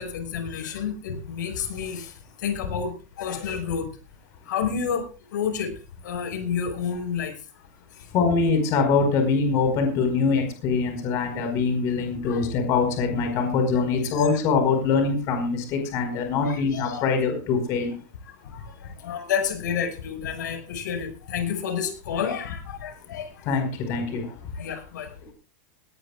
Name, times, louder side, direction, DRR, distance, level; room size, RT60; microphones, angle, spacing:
voice 1, 0.0-2.1 2.4-3.9 4.5-5.1 5.3-5.7 6.0-7.3 12.2-12.4 14.1-14.3 16.4-17.0 18.5-23.3 24.6-25.1, left 7 dB, 85° left, 7 dB, 5.7 m, -30 dB
voice 2, 8.1-17.9 23.4-24.3, left 4 dB, 30° left, 5 dB, 4.8 m, -23 dB
19.0 x 18.5 x 2.4 m, 0.35 s
supercardioid pair, 180°, 10 cm